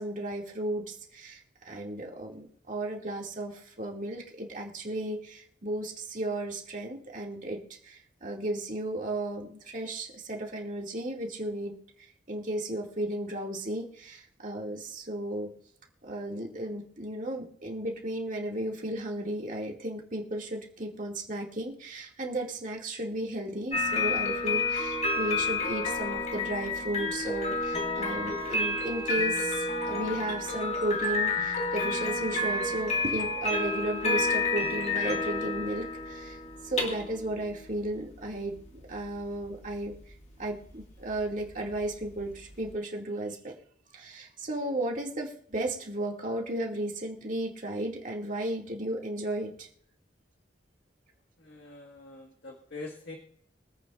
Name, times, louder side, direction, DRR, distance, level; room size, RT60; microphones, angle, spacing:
voice 1, 0.0-7.6 7.8-11.7 12.0-15.5 16.0-36.4 36.6-39.9 40.4-43.5 43.9-49.7, right 1 dB, 40° right, -1 dB, 2.4 m, -34 dB
sound 1, 23.7-42.7, left 3 dB, 35° left, 2.0 m, -30 dB
voice 2, 51.4-53.1, left 3 dB, 60° left, 0 dB, 1.8 m, -44 dB
24.5 x 8.8 x 2.5 m, 0.63 s
head